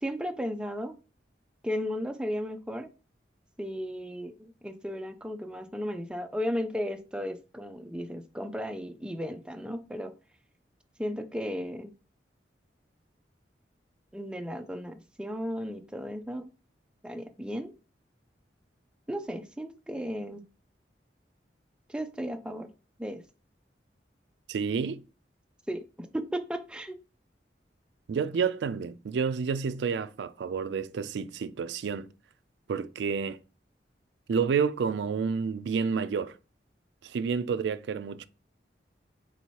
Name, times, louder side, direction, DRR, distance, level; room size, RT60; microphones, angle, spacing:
voice 1, 0.0-1.0 1.6-2.9 3.6-10.1 11.0-11.9 14.1-16.5 17.0-17.7 19.1-20.4 21.9-22.7 23.0-23.2 25.7-27.0, equal, 5° right, 0.4 m, -35 dB
voice 2, 24.5-25.0 28.1-32.1 32.7-33.4 34.3-36.4 37.0-38.2, right 6 dB, 75° right, 0.3 m, -29 dB
4.0 x 2.8 x 4.5 m
head